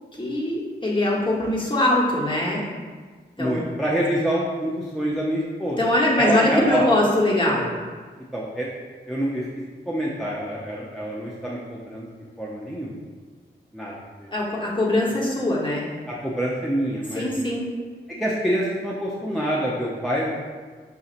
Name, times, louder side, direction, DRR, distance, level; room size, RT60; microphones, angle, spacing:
voice 1, 0.2-2.6 3.4-3.6 5.8-7.7 14.3-15.9 17.1-17.7, left 1 dB, 25° left, -5 dB, 1.1 m, -22 dB
voice 2, 3.4-5.8 6.2-6.9 8.3-8.7 9.1-9.4 9.9-12.1 12.4-13.0 13.7-13.9 14.2-14.3 16.1-17.3 18.2-20.3, equal, ahead, -6 dB, 0.6 m, -26 dB
5.2 x 2.7 x 2.5 m, 1.5 s
cardioid pair, 50°, 18 cm